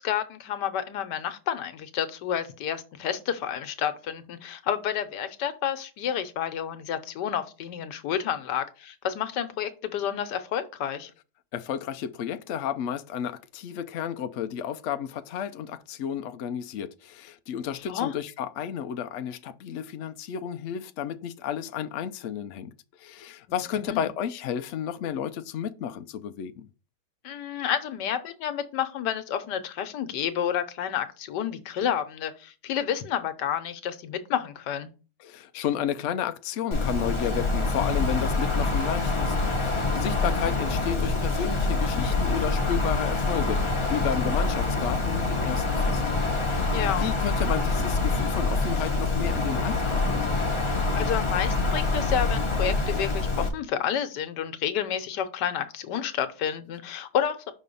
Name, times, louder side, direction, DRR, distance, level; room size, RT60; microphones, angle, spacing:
voice 1, 0.0-11.1 17.8-18.1 23.5-24.1 27.2-34.9 40.2-40.4 46.7-47.1 50.9-57.5, left 9 dB, 90° left, 1.4 m, -30 dB
voice 2, 11.5-22.7 23.0-26.7 35.2-46.0 46.4-50.3, left 9 dB, 70° left, 0.7 m, -32 dB
Wind, 36.7-53.5, left 3 dB, 20° left, 0.8 m, -26 dB
5.6 x 4.1 x 5.3 m
omnidirectional pair, 1.8 m